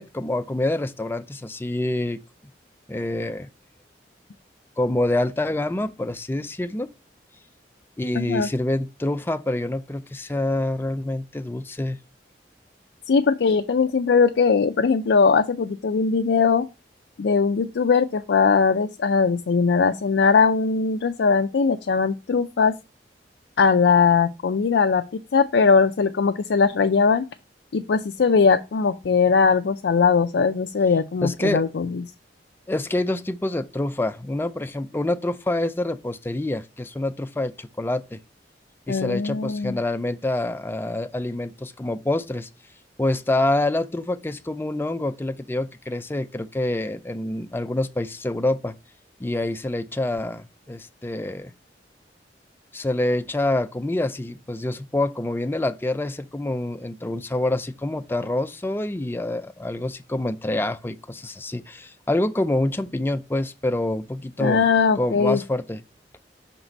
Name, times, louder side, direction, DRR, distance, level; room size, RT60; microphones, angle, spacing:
voice 1, 0.0-2.2 2.9-3.5 4.8-6.9 8.0-12.0 31.2-31.6 32.7-38.2 38.9-42.5 43.0-48.8 49.2-51.5 52.7-64.6 65.0-65.8, left 1 dB, 15° left, 0.4 m, -26 dB
voice 2, 8.1-8.5 13.1-16.7 17.2-22.7 23.6-27.3 27.7-32.0 38.9-39.8 64.4-65.4, left 5 dB, 80° left, 0.4 m, -20 dB
6.0 x 4.0 x 4.4 m
head